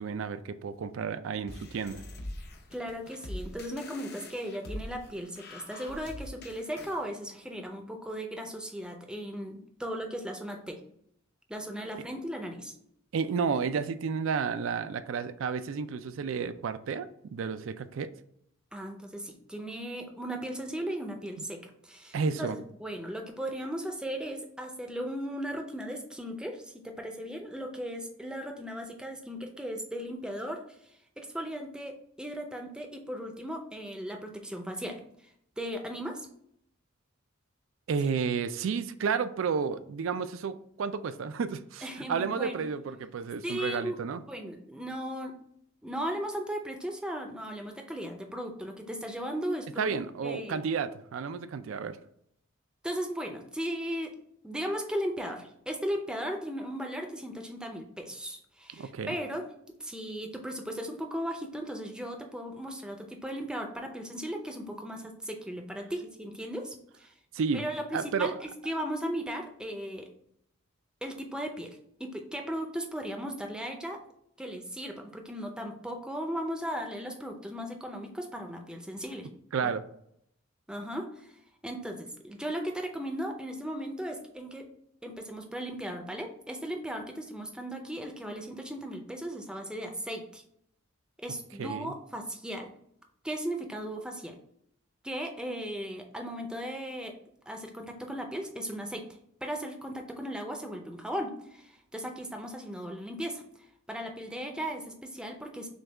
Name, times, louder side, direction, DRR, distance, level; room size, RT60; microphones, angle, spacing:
voice 1, 0.0-2.0 11.9-12.1 13.1-18.1 22.1-22.6 37.9-44.2 49.8-52.0 58.8-59.2 67.3-67.6 67.9-68.3 79.5-79.8 91.6-91.9, right 5 dB, 70° right, 12 dB, 0.4 m, -31 dB
sound 1, 1.5-7.0, left 1 dB, 50° left, 0.7 m, -43 dB
voice 2, 2.7-10.8 11.5-12.7 18.7-30.6 31.2-35.0 35.6-36.3 41.8-42.6 43.4-44.0 44.3-45.4 45.8-49.9 50.2-50.6 52.8-54.1 54.4-67.1 67.5-70.1 71.0-74.0 74.4-79.3 80.7-81.3 81.6-84.7 85.0-90.4 91.2-92.7 93.2-94.4 95.0-97.1 97.5-99.0 99.4-103.4 103.9-105.7, equal, 5° right, 3 dB, 0.5 m, -37 dB
6.4 x 2.3 x 3.4 m, 0.71 s
head